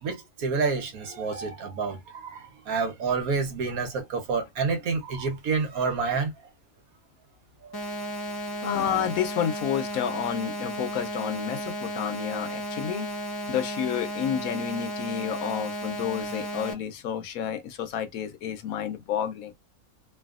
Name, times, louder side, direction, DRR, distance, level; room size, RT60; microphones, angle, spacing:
voice 1, 0.0-6.3 7.7-8.1 10.1-10.2, right 4 dB, 75° right, 1.4 m, -29 dB
sound 1, 7.7-16.7, equal, 25° left, 0.6 m, -34 dB
voice 2, 8.6-13.1 13.5-19.5, left 9 dB, 75° left, 1.1 m, -30 dB
3.3 x 2.2 x 2.4 m
omnidirectional pair, 1.5 m